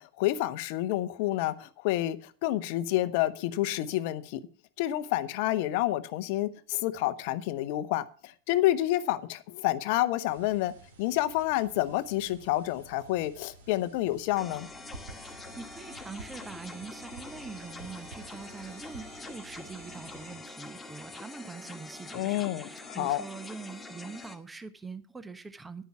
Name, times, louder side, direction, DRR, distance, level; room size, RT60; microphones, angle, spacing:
voice 1, 0.0-4.4 4.8-10.7 11.0-14.7 22.1-23.2, left 15 dB, 45° left, 14 dB, 0.9 m, -29 dB
sound 1, 10.3-20.4, right 3 dB, 65° right, 3.0 m, -51 dB
sound 2, 14.4-24.4, left 3 dB, 10° left, 1.8 m, -45 dB
voice 2, 15.1-25.8, right 4 dB, 10° right, 12 dB, 1.0 m, -44 dB
11.5 x 9.3 x 5.9 m, 0.43 s
figure-of-eight pair, 90°, 0 cm